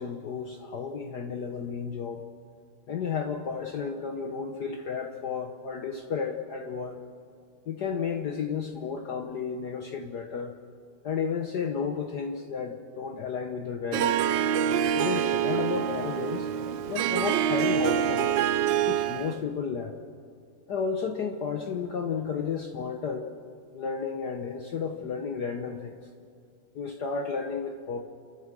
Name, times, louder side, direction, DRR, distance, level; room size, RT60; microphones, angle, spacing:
voice 1, 0.0-2.3 2.9-7.0 7.7-10.5 11.0-14.3 14.9-16.5 16.9-18.3 18.9-20.0 20.7-23.3 23.7-26.0 26.7-28.0, left 6 dB, 55° left, 5 dB, 1.4 m, -32 dB
Harp, 13.9-19.4, right 9 dB, 70° right, 1.2 m, -26 dB
29.5 x 14.5 x 6.3 m, 2.4 s
omnidirectional pair, 2.4 m